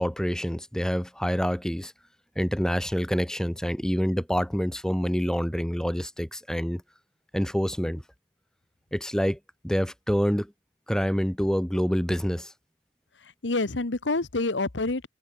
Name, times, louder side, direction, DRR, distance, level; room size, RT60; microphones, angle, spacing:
voice 1, 0.0-1.9 2.3-6.8 7.3-8.0 8.9-9.4 9.6-10.5 10.9-12.5, equal, 5° left, 1.3 m, -27 dB
voice 2, 13.2-15.1, left 2 dB, 85° left, 1.3 m, -28 dB
head